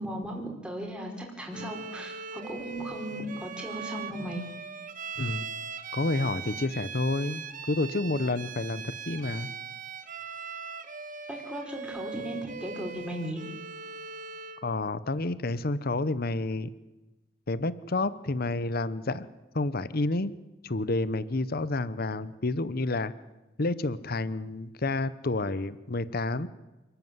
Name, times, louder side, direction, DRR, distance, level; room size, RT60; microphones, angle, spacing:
voice 1, 0.0-4.4 11.3-13.4, equal, 5° right, 0 dB, 4.8 m, -37 dB
Bowed string instrument, 1.5-14.7, right 6 dB, 45° right, 1.5 m, -40 dB
voice 2, 5.9-9.5 14.6-16.7 17.5-19.3 19.5-20.3 20.6-23.1 23.6-26.5, left 2 dB, 55° left, 16 dB, 0.9 m, -29 dB
28.5 x 13.0 x 9.6 m, 1.1 s
head